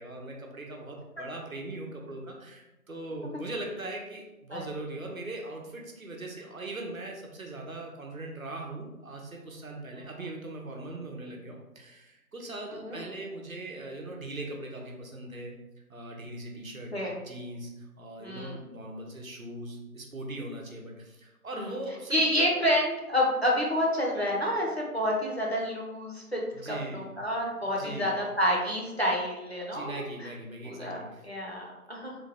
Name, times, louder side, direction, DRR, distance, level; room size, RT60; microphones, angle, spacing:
voice 1, 0.0-15.6 15.9-16.9 17.2-22.5 26.5-27.1 27.6-28.1 29.7-31.2, right 2 dB, 65° right, 0 dB, 0.8 m, -40 dB
voice 2, 18.2-18.6 22.1-30.0 30.6-32.1, equal, 45° left, -3 dB, 0.6 m, -29 dB
3.2 x 2.1 x 3.5 m, 1.0 s
figure-of-eight pair, 170°, 45 cm